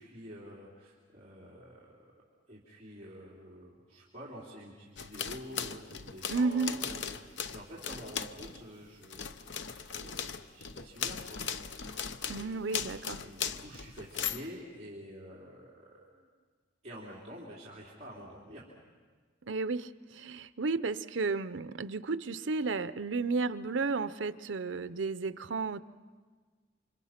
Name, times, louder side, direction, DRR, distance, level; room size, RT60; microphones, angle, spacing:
voice 1, 0.0-2.1 2.5-12.9 13.2-16.3 16.8-18.7, equal, 35° right, -6 dB, 3.3 m, -48 dB
sound 1, 5.0-8.7 9.0-14.5, left 7 dB, 80° left, 0.8 m, -38 dB
voice 2, 6.3-6.7 12.3-13.2 19.5-25.8, right 4 dB, 90° right, 14 dB, 0.7 m, -33 dB
29.0 x 25.5 x 5.9 m, 1.5 s
head